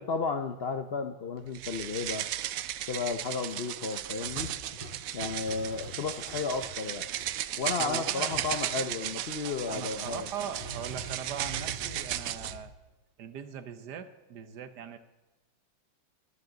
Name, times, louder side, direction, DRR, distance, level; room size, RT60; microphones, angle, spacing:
voice 1, 0.0-2.3 2.9-4.5 5.1-7.1 7.6-10.3, left 4 dB, 85° left, 7 dB, 0.5 m, -33 dB
sound 1, 1.5-12.6, right 12 dB, 90° right, 0.7 m, -35 dB
sound 2, 4.4-7.3 8.1-9.1 10.0-12.7, right 1 dB, 15° right, 5.0 m, -44 dB
voice 2, 7.8-8.3 9.4-12.7 13.2-15.0, right 7 dB, 65° right, 10 dB, 1.4 m, -40 dB
22.5 x 8.7 x 3.9 m, 1.1 s
omnidirectional pair, 2.1 m